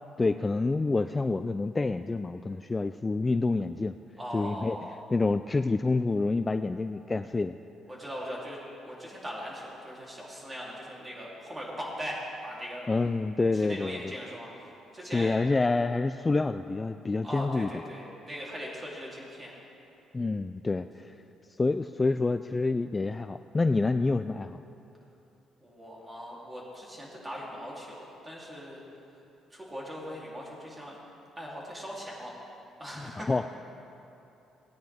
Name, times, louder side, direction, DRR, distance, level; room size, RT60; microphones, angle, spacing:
voice 1, 0.2-4.0 4.3-4.8 5.1-7.6 12.9-14.1 15.1-17.7 20.1-21.1 21.6-24.6 33.0-33.5, left 3 dB, 25° left, 10 dB, 0.3 m, -27 dB
voice 2, 4.2-5.0 7.9-8.6 8.8-12.9 13.5-14.5 14.9-15.4 17.2-19.5 25.6-28.8 29.5-31.0 31.4-32.3 32.8-33.5, equal, 20° right, -4 dB, 3.3 m, -40 dB
18.0 x 9.5 x 3.6 m, 2.8 s
cardioid pair, 85°, 0 cm